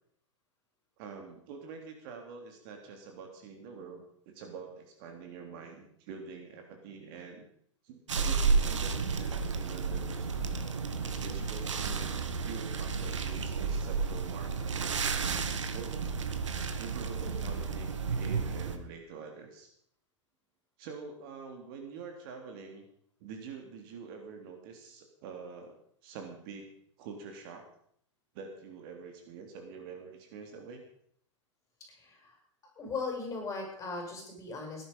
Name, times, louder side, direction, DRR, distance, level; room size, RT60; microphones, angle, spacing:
voice 1, 1.0-7.5 7.8-10.6 11.2-12.0 12.4-15.1 15.7-16.3 16.8-19.7 20.8-22.8 23.2-26.7 27.0-27.6 28.3-30.8, right 5 dB, 45° right, 4 dB, 3.1 m, -46 dB
sound 1, 8.1-18.8, right 5 dB, 70° right, 1.8 m, -32 dB
voice 2, 17.2-17.5 31.9-32.4 32.8-34.8, left 4 dB, 20° left, 1 dB, 7.2 m, -38 dB
17.5 x 11.0 x 5.4 m, 0.67 s
figure-of-eight pair, 100°, 16 cm